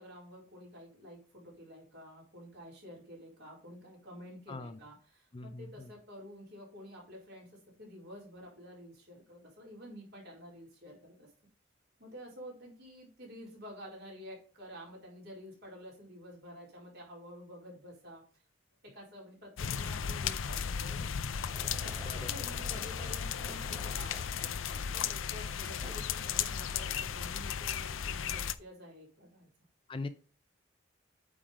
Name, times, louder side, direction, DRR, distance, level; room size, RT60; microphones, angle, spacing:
voice 1, 0.0-11.3 12.0-18.4 18.8-21.1 21.5-24.2 24.7-29.5, equal, 55° right, -3 dB, 4.1 m, -50 dB
voice 2, 4.5-4.8 5.3-5.9 22.0-22.3 29.9-30.1, left 3 dB, 25° left, 10 dB, 0.4 m, -41 dB
sound 1, 19.6-28.5, left 8 dB, 85° left, 0.5 m, -35 dB
Fireworks, 21.3-27.3, right 1 dB, 20° right, 2.8 m, -52 dB
8.5 x 3.8 x 5.0 m, 0.41 s
head